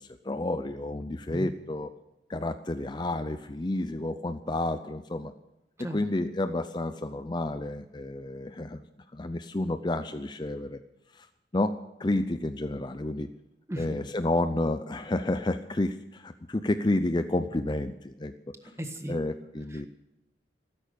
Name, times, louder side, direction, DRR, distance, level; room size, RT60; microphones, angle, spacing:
voice 1, 0.0-1.9 2.3-5.3 5.8-8.8 9.1-10.8 11.1-11.3 11.5-13.3 13.8-18.3 19.1-19.9, left 2 dB, 25° left, 10 dB, 0.5 m, -30 dB
voice 2, 18.8-19.2, right 1 dB, 15° right, 6 dB, 1.5 m, -35 dB
14.5 x 13.0 x 6.8 m, 0.92 s
head